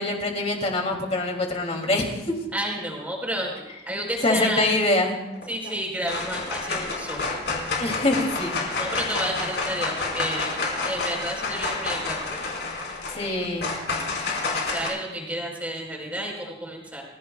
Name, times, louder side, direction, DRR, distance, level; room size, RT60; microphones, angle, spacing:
voice 1, 0.0-2.3 4.2-5.3 7.8-8.6 13.1-13.7, left 2 dB, 35° left, 1 dB, 2.8 m, -24 dB
voice 2, 2.5-4.7 5.5-7.2 8.8-12.4 14.4-17.0, right 1 dB, 10° right, -1 dB, 4.4 m, -31 dB
sound 1, 5.4-5.7 6.1-14.9, left 3 dB, 70° left, 4.9 m, -29 dB
29.0 x 15.5 x 2.4 m, 1.0 s
head